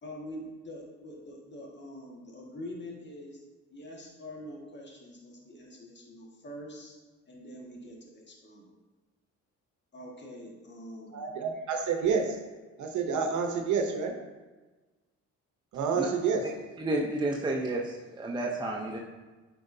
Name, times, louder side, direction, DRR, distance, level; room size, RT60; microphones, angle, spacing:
voice 1, 0.0-3.4 3.7-6.9 7.3-8.7 9.9-11.3 11.5-11.6, equal, 35° left, -2 dB, 1.7 m, -45 dB
voice 2, 11.1-12.4 12.8-14.1 15.7-16.5, right 5 dB, 70° right, 3 dB, 0.9 m, -28 dB
voice 3, 16.8-19.0, right 2 dB, 15° right, -1 dB, 0.7 m, -31 dB
9.2 x 4.5 x 2.7 m, 1.2 s
cardioid pair, 90°, 30 cm